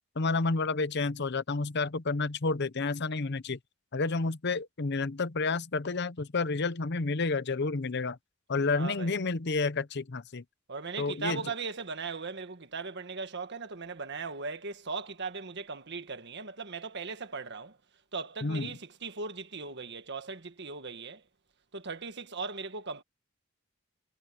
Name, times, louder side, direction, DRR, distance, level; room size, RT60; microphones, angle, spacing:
voice 1, 0.2-3.6 3.9-8.2 8.5-10.4 11.0-11.4 18.4-18.7, left 3 dB, 55° left, 0.8 m, -30 dB
voice 2, 8.7-9.1 10.7-17.8 18.1-21.2 21.7-23.0, right 4 dB, 55° right, 1.6 m, -38 dB
head